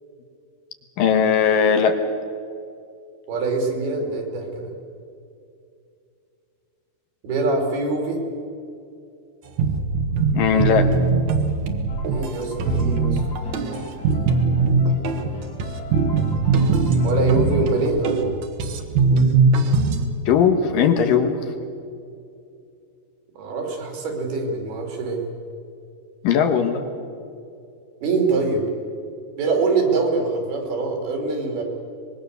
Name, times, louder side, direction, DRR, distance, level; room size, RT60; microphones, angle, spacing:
voice 1, 1.0-2.0 10.3-10.9 20.3-21.4 26.2-26.8, left 7 dB, 70° left, 7 dB, 2.7 m, -18 dB
voice 2, 3.3-4.7 7.2-8.2 12.1-13.2 17.0-18.3 23.4-25.2 28.0-28.6 29.4-31.6, right 3 dB, 75° right, 2 dB, 5.0 m, -24 dB
sound 1, 9.6-20.1, right 4 dB, 60° right, 2.2 m, -21 dB
sound 2, 11.9-17.9, left 3 dB, 35° left, 1.9 m, -40 dB
24.5 x 21.5 x 6.8 m, 2.5 s
omnidirectional pair, 4.5 m